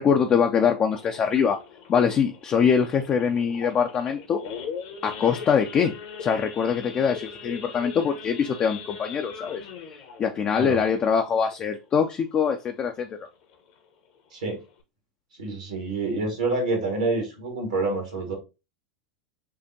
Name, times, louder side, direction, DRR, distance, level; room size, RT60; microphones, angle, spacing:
voice 1, 0.0-1.6 1.9-4.4 5.0-5.9 6.2-9.7 10.2-13.1, left 7 dB, 30° left, 4 dB, 0.5 m, -23 dB
Idling / Accelerating revving vroom / Sawing, 0.9-12.0 12.4-12.6 12.8-12.9 13.4-13.7 14.2-14.3 14.5-14.8, left 6 dB, 60° left, 1.1 m, -40 dB
voice 2, 15.4-18.3, right 3 dB, 80° right, 1 dB, 2.0 m, -27 dB
6.6 x 2.5 x 2.7 m, 0.27 s
figure-of-eight pair, 85°, 4 cm